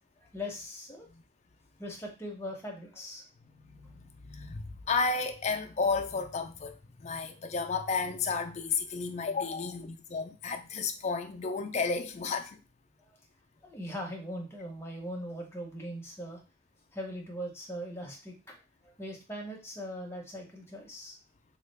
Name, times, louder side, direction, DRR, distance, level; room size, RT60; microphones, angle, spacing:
voice 1, 0.2-1.1 1.8-3.2 13.6-16.4 16.9-18.4 18.8-21.2, equal, 10° left, 0.7 m, -40 dB
voice 2, 3.5-12.6, left 4 dB, 35° left, 0.3 m, -32 dB
3.2 x 2.3 x 3.2 m
head